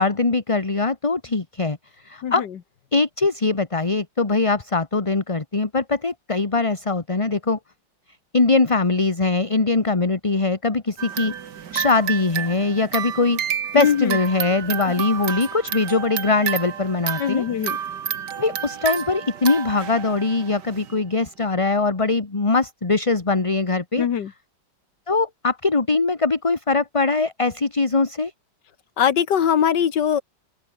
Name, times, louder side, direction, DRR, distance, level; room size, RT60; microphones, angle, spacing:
voice 1, 0.0-1.8 2.0-2.4 2.9-7.6 8.3-11.3 11.7-13.4 13.7-17.4 18.4-24.1 25.1-28.3, left 3 dB, 20° left, 1.3 m, -21 dB
sound 1, 11.0-21.0, right 8 dB, 70° right, 2.0 m, -30 dB
voice 2, 13.7-14.2 14.8-14.9 17.2-17.8 24.0-24.3 29.0-30.2, left 8 dB, 70° left, 1.9 m, -21 dB
open air
omnidirectional pair, 2.0 m